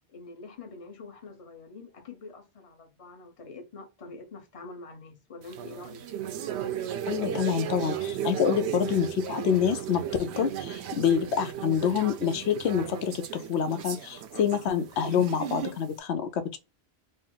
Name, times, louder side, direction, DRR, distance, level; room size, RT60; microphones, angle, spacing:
voice 1, 0.1-6.1, left 3 dB, 35° left, 0.8 m, -45 dB
sound 1, 5.4-15.9, right 9 dB, 85° right, 0.8 m, -35 dB
voice 2, 7.1-16.6, left 8 dB, 85° left, 0.9 m, -27 dB
4.2 x 2.0 x 3.8 m
omnidirectional pair, 1.1 m